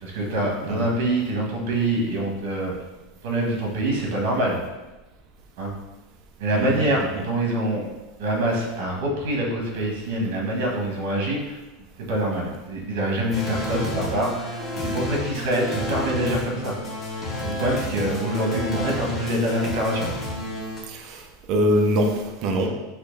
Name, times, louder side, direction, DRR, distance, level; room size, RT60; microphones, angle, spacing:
voice 1, 0.0-2.7 3.2-4.6 5.6-5.7 6.4-7.8 8.2-11.6 12.1-16.7 17.4-20.1 22.6-22.7, right 1 dB, 70° right, -1 dB, 1.4 m, -25 dB
sound 1, 13.3-20.8, left 1 dB, 20° left, 1.0 m, -30 dB
voice 2, 20.9-22.7, equal, 40° right, 3 dB, 0.6 m, -23 dB
4.4 x 3.0 x 4.0 m, 1.1 s
supercardioid pair, 150°, 0 cm